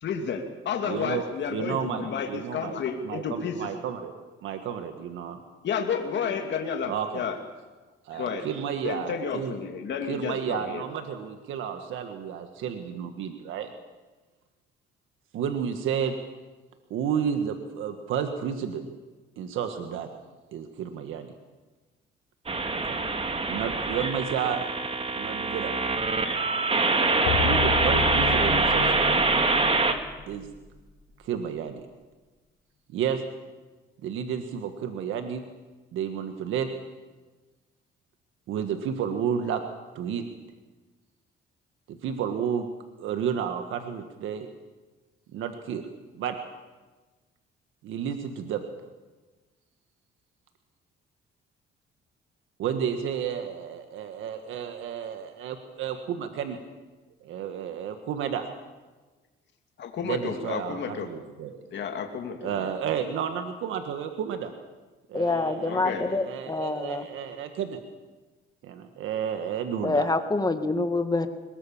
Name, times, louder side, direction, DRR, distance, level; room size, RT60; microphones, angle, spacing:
voice 1, 0.0-3.7 5.6-7.4 8.1-8.5 8.8-10.8 59.8-61.1 61.7-62.7 65.6-66.1, left 6 dB, 65° left, 4 dB, 2.5 m, -31 dB
voice 2, 0.8-1.2 1.5-2.8 3.0-4.1 4.4-5.4 6.9-7.3 8.0-9.6 10.1-13.7 15.3-16.1 16.9-18.9 19.4-20.1 20.5-21.3 22.7-23.0 23.5-24.7 25.2-25.7 27.4-29.3 30.3-30.5 31.2-31.8 32.9-33.2 34.0-35.4 35.9-36.7 38.5-39.6 39.9-40.2 41.9-42.7 43.0-44.5 45.3-45.8 46.2-46.3 47.8-48.6 52.6-56.6 57.2-58.5 60.0-61.6 62.4-64.5 65.1-67.8 68.6-70.1, right 8 dB, 85° right, 7 dB, 1.6 m, -31 dB
sound 1, 22.5-29.9, right 3 dB, 30° right, 2.3 m, -24 dB
sound 2, 26.9-30.9, left 8 dB, 85° left, 1.9 m, -32 dB
voice 3, 65.1-67.1 69.8-71.3, left 3 dB, 20° left, 8 dB, 2.0 m, -26 dB
22.0 x 20.5 x 7.2 m, 1.3 s
cardioid pair, 90°, 20 cm